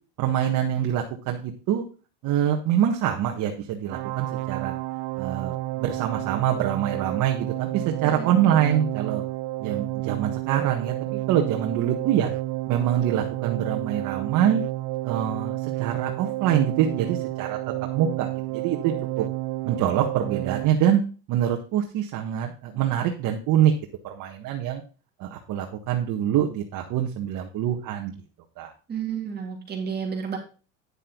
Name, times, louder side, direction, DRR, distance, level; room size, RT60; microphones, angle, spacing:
voice 1, 0.2-1.8 2.2-4.7 5.2-9.2 9.6-12.3 12.7-14.6 15.0-17.6 17.9-19.2 19.6-21.0 21.3-23.7 24.0-24.8 25.2-28.1 28.6-28.7, right 10 dB, 55° right, 2 dB, 1.7 m, -25 dB
sound 1, 3.9-20.7, right 19 dB, 75° right, 0.6 m, -31 dB
voice 2, 28.9-30.4, right 7 dB, 25° right, 1 dB, 3.0 m, -31 dB
10.0 x 6.7 x 4.0 m, 0.35 s
cardioid pair, 130°, 37 cm